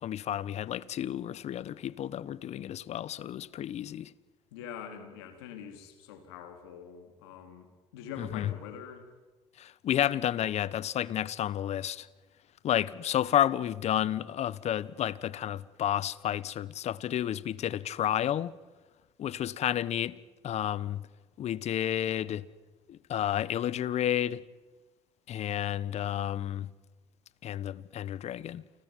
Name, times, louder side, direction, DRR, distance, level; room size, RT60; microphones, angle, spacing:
voice 1, 0.0-4.1 8.2-8.5 9.6-12.1 12.6-18.5 19.2-20.2 20.4-21.0 21.4-22.4 22.9-24.4 25.3-26.7 27.4-28.6, left 11 dB, 60° left, 1.2 m, -31 dB
voice 2, 4.5-7.7 7.9-9.1, left 7 dB, 90° left, 4.1 m, -44 dB
29.0 x 20.0 x 9.3 m
supercardioid pair, 65°, 13 cm